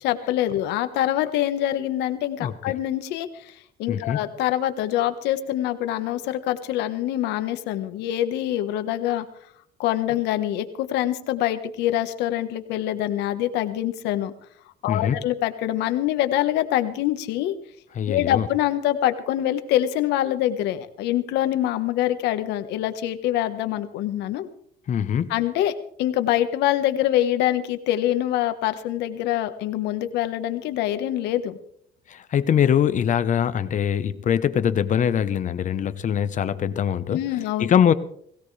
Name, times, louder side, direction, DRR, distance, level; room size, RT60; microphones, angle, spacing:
voice 1, 0.0-3.5 3.8-9.3 9.8-14.3 14.8-17.5 18.1-24.5 25.3-25.7 26.0-31.6 37.1-37.7, left 12 dB, 90° left, 9 dB, 1.4 m, -25 dB
voice 2, 3.9-4.2 14.9-15.2 17.9-18.5 24.9-25.3 32.1-37.2 37.6-37.9, left 9 dB, 45° left, 13 dB, 1.0 m, -22 dB
21.0 x 16.5 x 3.4 m, 0.65 s
cardioid pair, 110°, 17 cm